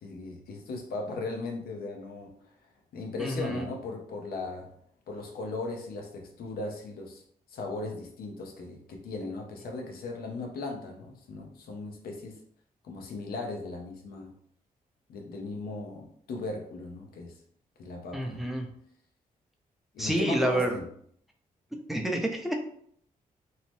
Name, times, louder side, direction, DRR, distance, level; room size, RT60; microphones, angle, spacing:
voice 1, 0.0-2.3 2.9-4.7 5.1-7.2 7.5-12.4 12.8-14.3 15.1-17.3 17.8-18.5 19.9-20.9, left 3 dB, 85° left, 2 dB, 0.6 m, -37 dB
voice 2, 3.2-3.6 18.1-18.7 20.0-20.7 21.9-22.6, right 1 dB, ahead, 2 dB, 0.5 m, -28 dB
2.7 x 2.0 x 3.1 m, 0.64 s
cardioid pair, 70°, 15 cm